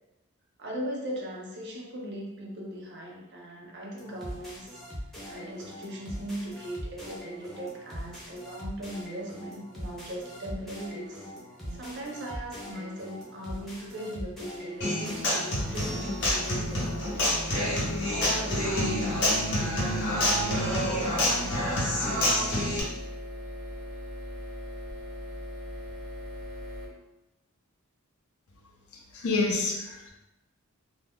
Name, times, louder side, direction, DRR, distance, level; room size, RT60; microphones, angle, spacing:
voice 1, 0.6-4.8 5.3-11.3 11.7-17.4 18.1-21.3, equal, 50° right, -2 dB, 0.6 m, -39 dB
sound 1, 4.0-16.9, equal, ahead, 0.5 m, -41 dB
Human voice / Acoustic guitar, 14.8-22.8, left 1 dB, 55° left, 0.8 m, -27 dB
sound 2, 15.7-26.9, left 1 dB, 80° right, 1.1 m, -39 dB
voice 2, 29.1-30.1, left 3 dB, 70° left, 0 dB, 0.5 m, -28 dB
2.5 x 2.2 x 3.5 m, 0.97 s
head